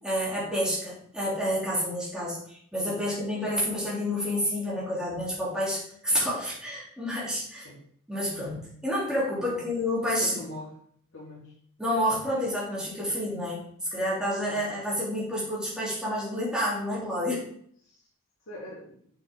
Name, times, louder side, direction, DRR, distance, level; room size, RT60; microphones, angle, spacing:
voice 1, 0.0-7.7 8.1-10.4 11.8-13.6 13.9-17.4, equal, 5° right, -7 dB, 3.1 m, -29 dB
voice 2, 10.2-10.8 11.1-11.6 17.8-18.0 18.5-19.1, left 1 dB, 60° left, -8 dB, 3.5 m, -42 dB
6.8 x 6.7 x 3.7 m, 0.63 s
head